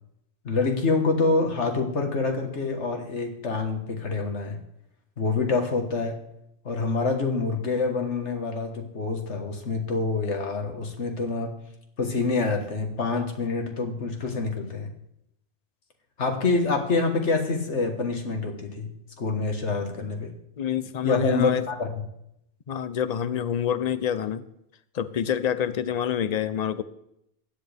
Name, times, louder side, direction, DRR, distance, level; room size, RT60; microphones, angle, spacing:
voice 1, 0.4-4.6 5.2-6.2 6.7-11.5 12.0-14.9 16.2-18.9 19.2-20.3 21.0-21.9, left 3 dB, 85° left, 4 dB, 1.8 m, -26 dB
voice 2, 20.6-21.6 22.7-24.4 24.9-26.8, left 9 dB, 45° left, 14 dB, 0.6 m, -27 dB
16.0 x 10.5 x 3.5 m, 0.77 s
omnidirectional pair, 1.2 m